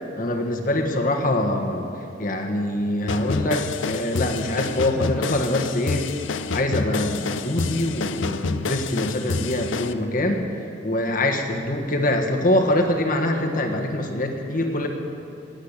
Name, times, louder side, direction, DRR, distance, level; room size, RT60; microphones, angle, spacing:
voice 1, 0.2-1.9 2.2-6.0 6.5-10.5 10.8-14.9, left 1 dB, 45° left, 2 dB, 1.5 m, -24 dB
sound 1, 3.1-9.9, left 4 dB, 90° left, 0.6 m, -28 dB
19.0 x 8.0 x 8.2 m, 2.6 s
head